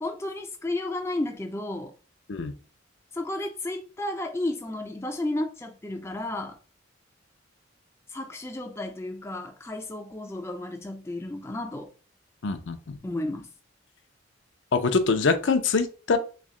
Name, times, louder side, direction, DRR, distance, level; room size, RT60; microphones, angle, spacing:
voice 1, 0.0-1.9 3.1-6.6 8.1-11.9 13.0-13.5, left 1 dB, 15° left, 0.4 m, -32 dB
voice 2, 12.4-13.0 14.7-16.2, left 4 dB, 65° left, 0.5 m, -24 dB
3.5 x 3.2 x 3.6 m
head